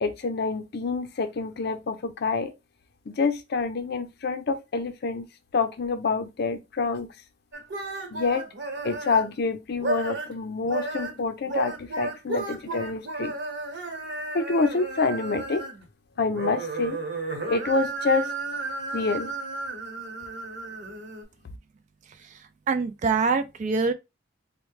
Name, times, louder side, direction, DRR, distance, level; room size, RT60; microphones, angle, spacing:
voice 1, 0.0-2.5 3.1-5.3 5.5-7.1 8.1-8.4 8.8-13.3 14.3-15.6 16.2-17.0 17.5-18.3 18.9-19.3, left 4 dB, 55° left, 0.5 m, -27 dB
sound 1, 7.5-9.3 9.7-10.4 10.6-15.8 16.2-21.2, right 2 dB, 65° right, 1.2 m, -33 dB
voice 2, 22.7-23.9, right 4 dB, 40° right, 0.3 m, -24 dB
4.4 x 2.1 x 3.1 m
head